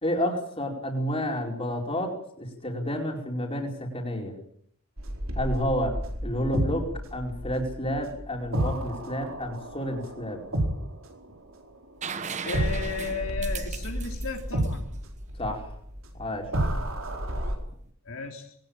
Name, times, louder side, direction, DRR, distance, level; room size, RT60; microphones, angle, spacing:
voice 1, 0.0-4.3 5.3-5.9 6.2-10.4 15.4-15.7 16.2-16.5, equal, 25° left, 2 dB, 4.7 m, -30 dB
sound 1, 5.0-12.0 12.5-17.5, right 1 dB, 65° right, 4.5 m, -31 dB
sound 2, 12.0-15.7 17.6-17.7, right 6 dB, 30° right, 1.1 m, -38 dB
voice 2, 12.4-14.9 18.0-18.5, left 4 dB, 65° left, 3 dB, 3.1 m, -34 dB
21.5 x 19.0 x 8.9 m, 0.67 s
head